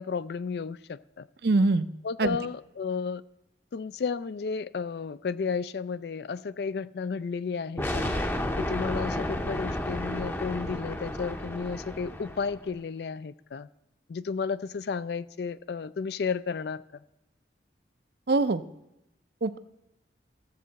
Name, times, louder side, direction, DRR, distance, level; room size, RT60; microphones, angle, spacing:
voice 1, 0.0-1.3 2.0-3.2 3.7-8.2 8.6-13.7 14.1-17.0, left 5 dB, 65° left, 16 dB, 0.4 m, -33 dB
voice 2, 1.4-1.8 2.2-2.4 18.3-18.6 19.4-19.6, right 3 dB, 60° right, 12 dB, 0.5 m, -23 dB
sound 1, 7.8-12.6, left 1 dB, 10° left, 0.6 m, -32 dB
14.0 x 7.5 x 4.0 m, 0.88 s
head